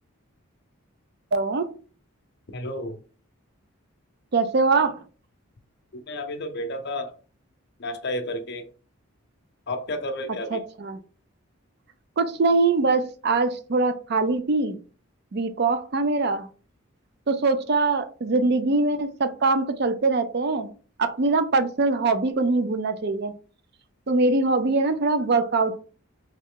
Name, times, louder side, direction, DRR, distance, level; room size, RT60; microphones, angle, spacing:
voice 1, 1.3-1.7 4.3-4.9 10.5-11.0 12.2-14.8 15.3-16.5 17.3-20.7 21.0-23.3 24.1-25.8, right 3 dB, 50° right, 0.4 m, -23 dB
voice 2, 2.5-3.0 5.9-7.1 7.8-8.7 9.7-10.6, left 1 dB, 50° left, 0.7 m, -31 dB
3.6 x 3.1 x 3.7 m
head